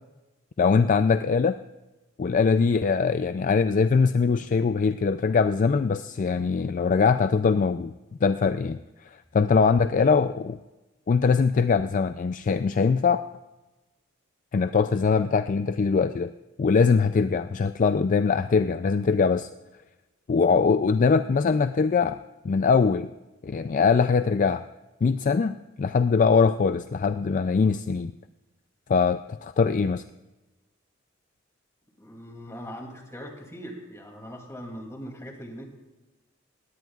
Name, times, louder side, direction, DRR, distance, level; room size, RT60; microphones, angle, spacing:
voice 1, 0.6-1.6 2.2-7.9 8.2-8.8 9.0-10.6 11.1-13.2 14.5-16.3 16.6-19.5 20.3-22.2 22.4-23.1 23.4-24.6 25.0-28.1 28.9-30.0, left 5 dB, 40° left, 10 dB, 0.4 m, -22 dB
voice 2, 32.0-35.7, equal, 15° left, 2 dB, 2.6 m, -40 dB
20.0 x 17.0 x 2.4 m, 1.1 s
head